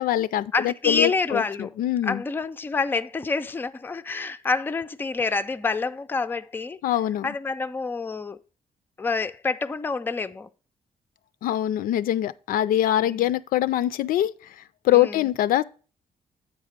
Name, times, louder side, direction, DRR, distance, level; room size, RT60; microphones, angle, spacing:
voice 1, 0.0-2.2 6.8-7.3 11.4-15.6, left 13 dB, 90° left, 0.4 m, -24 dB
voice 2, 0.5-1.7 2.0-6.8 7.2-8.4 9.0-10.5 13.0-13.3 14.9-15.3, left 4 dB, 15° left, 0.3 m, -27 dB
7.9 x 4.8 x 4.9 m
cardioid pair, 135°, 14 cm